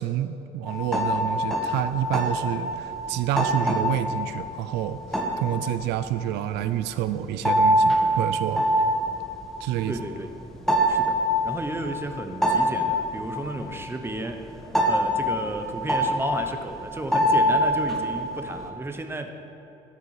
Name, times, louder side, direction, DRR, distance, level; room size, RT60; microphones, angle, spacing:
voice 1, 0.0-5.0 5.4-8.7 9.6-9.9, right 12 dB, 85° right, 12 dB, 0.4 m, -28 dB
sound 1, 0.7-18.7, equal, ahead, 1.3 m, -25 dB
voice 2, 9.9-10.3 10.9-11.2 11.4-14.6 14.8-19.3, right 2 dB, 15° right, 6 dB, 0.9 m, -33 dB
12.5 x 6.8 x 4.9 m, 3.0 s
cardioid pair, 110°, 17 cm